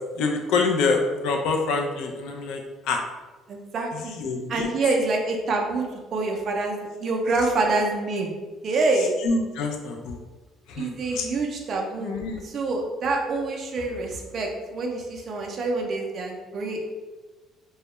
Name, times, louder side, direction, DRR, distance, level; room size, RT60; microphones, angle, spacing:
voice 1, 0.2-3.0 3.9-4.7 9.2-10.2 10.7-11.3 12.0-12.4, left 4 dB, 75° left, 3 dB, 0.4 m, -26 dB
voice 2, 3.5-4.2 4.5-5.9 6.1-8.3 8.6-9.1 10.8-16.8, right 3 dB, 40° right, 1 dB, 0.4 m, -26 dB
2.2 x 2.0 x 2.9 m, 1.2 s
cardioid pair, 160°, 0 cm